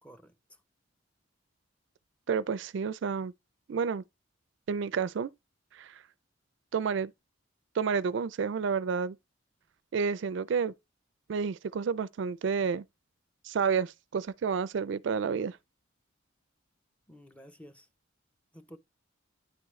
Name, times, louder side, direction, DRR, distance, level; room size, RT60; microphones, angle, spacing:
voice 1, 0.0-0.3 17.1-17.9 18.5-18.8, equal, 5° left, 0.7 m, -51 dB
voice 2, 2.3-3.3 3.7-4.0 4.7-5.3 5.7-6.0 6.7-7.1 7.7-9.2 9.9-10.7 11.3-12.8 13.4-15.6, right 6 dB, 65° right, 0.4 m, -30 dB
9.8 x 3.6 x 3.1 m
head